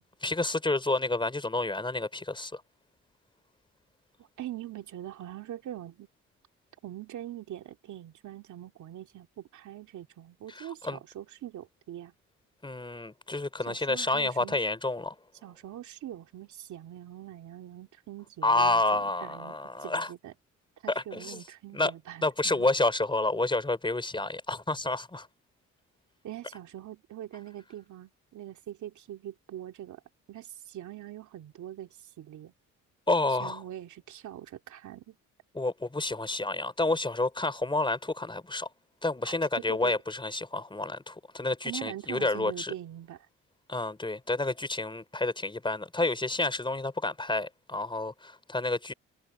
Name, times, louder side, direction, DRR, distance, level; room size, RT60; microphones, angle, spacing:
voice 1, 0.2-2.6 10.5-11.0 12.6-15.1 18.4-20.1 20.9-21.4 21.7-21.9 22.2-25.3 33.1-33.6 35.5-38.7 39.0-42.7 43.7-48.9, left 2 dB, 15° left, 4.4 m, -29 dB
voice 2, 4.2-6.1 6.8-12.1 13.7-14.6 15.4-20.3 20.8-22.7 26.2-30.0 30.3-32.5 33.4-35.2 39.2-39.9 41.6-43.3, right 12 dB, 75° right, 2.7 m, -43 dB
cardioid pair, 90°, 30 cm